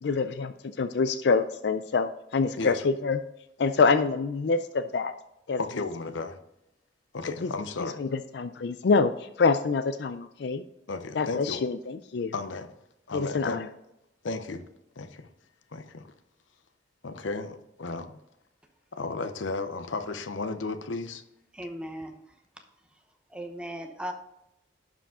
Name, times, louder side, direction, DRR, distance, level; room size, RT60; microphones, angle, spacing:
voice 1, 0.0-3.2 3.6-5.1 5.5-5.6 7.4-7.5 7.8-10.6 11.2-12.3 13.1-13.7, left 4 dB, 60° left, 10 dB, 0.4 m, -26 dB
voice 2, 5.6-6.4 7.1-8.0 10.9-11.7 12.3-12.7 13.1-13.6 14.2-14.6 15.0-15.3 15.7-16.0 17.0-18.2 18.9-21.2, left 3 dB, 85° left, 10 dB, 0.7 m, -34 dB
voice 3, 21.5-22.2 23.3-24.1, right 1 dB, 5° right, 4 dB, 0.8 m, -37 dB
11.5 x 5.0 x 3.6 m, 0.85 s
head